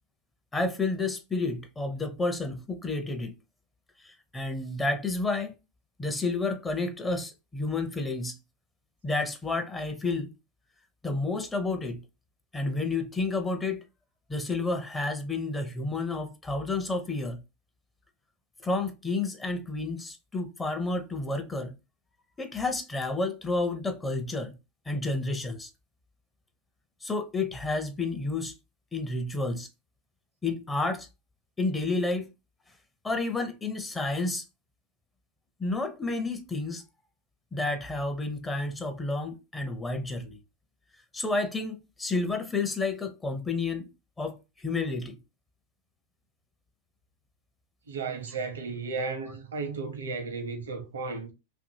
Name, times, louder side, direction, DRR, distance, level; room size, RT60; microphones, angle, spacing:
voice 1, 0.5-3.3 4.0-5.5 6.0-8.4 9.0-10.3 11.0-12.0 12.5-13.9 14.3-17.4 18.6-21.8 22.4-24.6 24.9-25.7 27.0-28.6 28.9-29.7 30.4-31.1 31.6-32.3 33.0-34.4 35.6-36.8 37.5-40.4 41.1-43.9 44.2-45.2, left 3 dB, 15° left, 0.6 m, -30 dB
voice 2, 47.9-51.3, right 4 dB, 75° right, 0.8 m, -34 dB
2.6 x 2.6 x 2.6 m
figure-of-eight pair, 95°, 0 cm